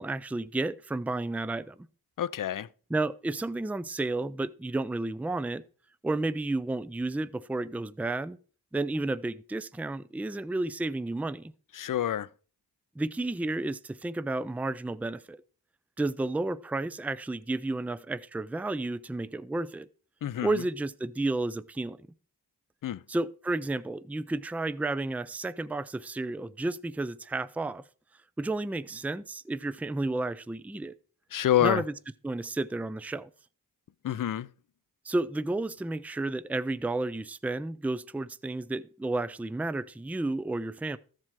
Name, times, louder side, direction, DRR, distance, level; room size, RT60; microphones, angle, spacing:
voice 1, 0.0-1.8 2.9-5.6 6.0-8.4 8.7-11.5 13.0-15.4 16.0-19.9 20.4-22.1 23.1-27.8 28.4-31.0 31.6-31.9 32.2-33.3 35.1-41.0, right 2 dB, 5° right, 0.5 m, -32 dB
voice 2, 2.2-2.7 11.7-12.3 20.2-20.6 22.8-23.0 31.3-31.8 34.0-34.5, left 11 dB, 55° left, 0.5 m, -27 dB
13.5 x 7.6 x 4.8 m
cardioid pair, 75°, 40 cm